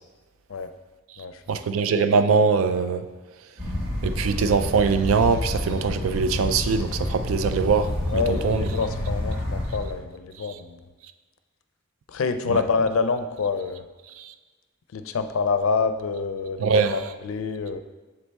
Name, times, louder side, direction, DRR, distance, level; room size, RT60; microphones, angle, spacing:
voice 1, 1.5-3.0 4.0-8.7 12.5-12.6 14.2-14.3 16.6-17.0, right 5 dB, 85° right, 10 dB, 0.4 m, -22 dB
sound 1, 3.6-10.0, left 1 dB, 60° right, 1.8 m, -29 dB
voice 2, 8.1-10.8 12.1-13.8 14.9-17.8, left 5 dB, 85° left, 9 dB, 0.4 m, -27 dB
7.0 x 4.2 x 3.3 m, 1.3 s
head